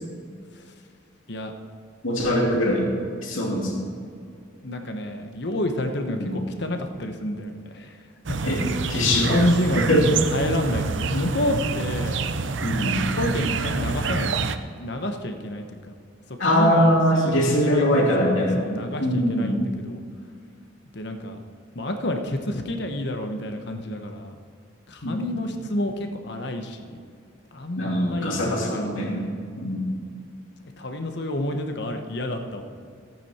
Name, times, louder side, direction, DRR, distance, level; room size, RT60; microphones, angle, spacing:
voice 1, 2.0-2.9 3.2-3.9 6.1-6.4 8.4-8.6 8.9-9.4 9.8-10.1 12.6-13.0 16.4-18.6 19.0-19.6 25.0-25.2 27.8-29.3 29.6-29.9, equal, 80° left, -2 dB, 2.8 m, -22 dB
voice 2, 4.6-7.9 8.3-8.5 9.1-10.0 10.3-12.2 13.1-14.5 14.8-15.9 16.4-17.9 18.2-20.0 20.9-21.4 21.7-24.3 24.9-27.0 27.5-29.4 30.8-32.6, left 1 dB, 55° left, 5 dB, 1.1 m, -29 dB
sound 1, 8.2-14.6, right 4 dB, 65° right, 0.6 m, -27 dB
15.5 x 9.2 x 4.4 m, 2.3 s
head